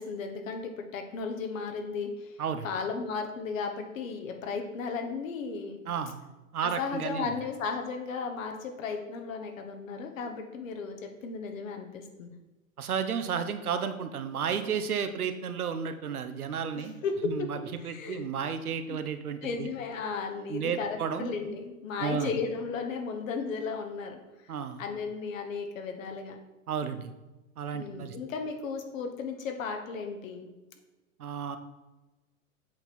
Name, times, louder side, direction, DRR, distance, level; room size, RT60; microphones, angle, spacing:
voice 1, 0.0-2.4 2.6-5.8 6.6-12.3 16.7-18.3 18.9-19.0 19.4-24.2 24.5-26.4 27.7-30.5, left 5 dB, 65° left, 4 dB, 1.3 m, -35 dB
voice 2, 5.9-6.2 6.5-7.3 12.8-17.0 17.2-17.6 17.8-19.7 20.5-21.3 22.0-22.3 24.5-24.8 26.7-27.1 27.6-28.2 31.2-31.6, right 7 dB, 80° right, 9 dB, 0.8 m, -32 dB
7.7 x 4.4 x 4.3 m, 1.1 s
figure-of-eight pair, 105°, 43 cm